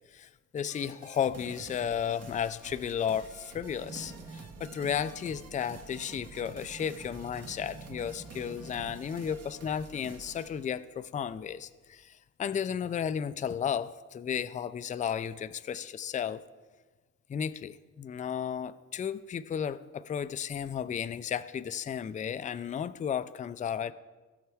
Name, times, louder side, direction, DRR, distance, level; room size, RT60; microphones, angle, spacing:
voice 1, 0.1-16.4 17.3-23.9, left 8 dB, 25° left, 13 dB, 0.4 m, -34 dB
sound 1, 0.6-10.8, right 4 dB, 55° right, 1.4 m, -50 dB
sound 2, 3.8-9.0, right 3 dB, 70° right, 1.8 m, -49 dB
16.5 x 6.4 x 3.5 m, 1.3 s
cardioid pair, 90°, 30 cm